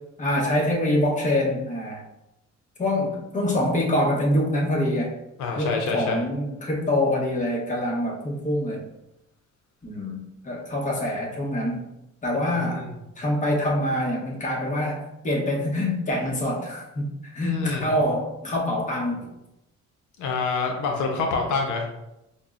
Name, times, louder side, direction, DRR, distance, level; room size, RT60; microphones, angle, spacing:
voice 1, 0.2-2.0 2.8-5.2 5.6-8.9 9.8-11.8 12.2-12.9 13.2-19.3, left 1 dB, 25° left, -2 dB, 0.9 m, -25 dB
voice 2, 5.4-6.2 12.7-12.9 17.4-17.8 20.2-21.8, left 4 dB, 80° left, 2 dB, 0.6 m, -26 dB
5.2 x 2.0 x 2.4 m, 0.90 s
cardioid pair, 90°, 30 cm